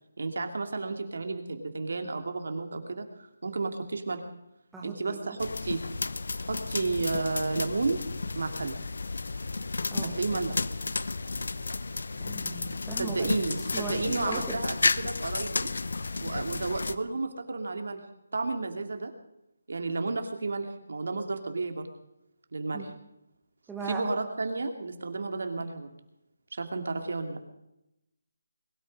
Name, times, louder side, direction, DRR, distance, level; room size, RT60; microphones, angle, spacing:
voice 1, 0.2-3.1 3.4-4.2 4.8-5.8 6.4-8.0 8.3-8.8 10.0-10.6 13.0-15.7 16.2-18.0 18.3-19.1 19.7-21.9 22.5-22.9 23.8-25.9 26.5-27.4, right 3 dB, 60° right, 6 dB, 2.5 m, -32 dB
voice 2, 4.7-5.4 9.9-10.2 12.2-14.6 22.7-22.9 23.7-24.1, right 4 dB, 5° right, -2 dB, 1.1 m, -39 dB
sound 1, 5.4-17.0, left 3 dB, 65° left, 0.7 m, -32 dB
22.0 x 12.5 x 5.2 m, 0.87 s
hypercardioid pair, 175°, 0 cm